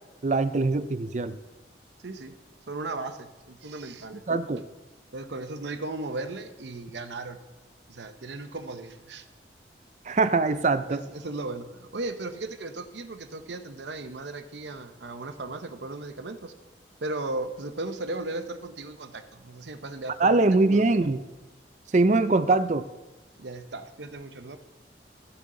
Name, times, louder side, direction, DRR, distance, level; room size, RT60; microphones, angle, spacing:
voice 1, 0.2-1.4 4.3-4.6 10.1-11.0 20.2-21.2 21.9-22.9, right 3 dB, 40° right, 12 dB, 0.4 m, -22 dB
voice 2, 2.0-2.4 2.7-4.2 5.1-7.4 7.9-9.3 10.9-16.5 17.0-20.4 20.7-21.2 23.4-24.6, right 2 dB, 75° right, 8 dB, 0.8 m, -36 dB
14.5 x 7.1 x 3.8 m, 1.1 s
head